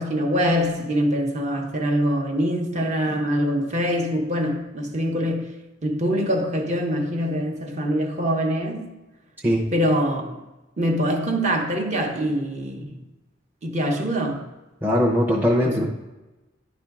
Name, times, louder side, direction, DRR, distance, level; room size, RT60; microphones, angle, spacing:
voice 1, 0.0-5.5 5.8-8.9 9.7-10.4 10.8-13.0 13.6-14.5 15.6-15.9, equal, 35° right, 0.9 m, -24 dB
voice 2, 14.8-15.9, equal, 10° right, 0.6 m, -20 dB
11.0 x 4.3 x 3.6 m
head